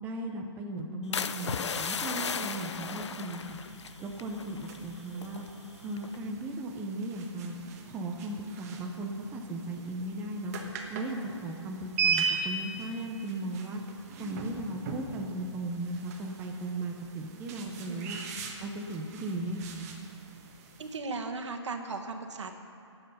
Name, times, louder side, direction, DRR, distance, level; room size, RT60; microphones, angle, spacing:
voice 1, 0.0-3.6 4.0-5.5 5.8-7.5 7.9-10.5 10.9-13.8 14.2-18.2 18.6-19.9, right 2 dB, 10° right, 1 dB, 0.6 m, -37 dB
sound 1, 1.1-5.5 6.0-6.3, left 6 dB, 70° left, 0.7 m, -35 dB
sound 2, 1.6-21.0, right 5 dB, 35° right, 1.4 m, -39 dB
voice 2, 20.8-22.5, right 3 dB, 75° right, 4 dB, 1.6 m, -37 dB
18.5 x 7.9 x 5.6 m, 2.5 s
hypercardioid pair, 160°, 15 cm